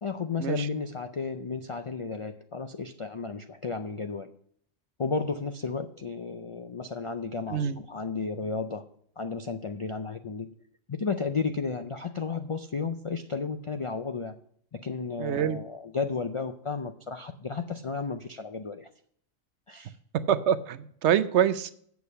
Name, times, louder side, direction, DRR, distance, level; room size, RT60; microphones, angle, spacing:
voice 1, 0.0-4.3 5.0-8.9 9.2-10.5 10.9-14.3 14.7-18.9 19.7-20.0, left 4 dB, 55° left, 7 dB, 0.3 m, -33 dB
voice 2, 15.2-15.6 20.3-21.7, right 9 dB, 70° right, 13 dB, 0.9 m, -25 dB
8.3 x 7.0 x 5.6 m, 0.63 s
omnidirectional pair, 1.3 m